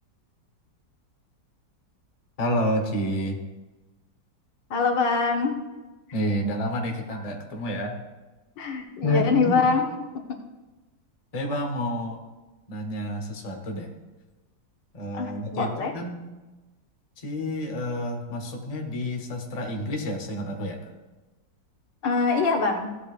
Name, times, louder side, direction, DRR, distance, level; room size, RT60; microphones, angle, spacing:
voice 1, 2.4-3.4 6.1-8.0 9.0-9.7 11.3-12.2 12.7-13.9 14.9-16.2 17.2-20.9, left 1 dB, 25° left, 2 dB, 1.0 m, -29 dB
voice 2, 4.7-5.6 8.6-9.9 10.2-10.3 15.1-15.9 22.0-22.9, left 4 dB, 80° left, 4 dB, 1.8 m, -24 dB
15.0 x 8.5 x 2.5 m, 1.2 s
omnidirectional pair, 2.0 m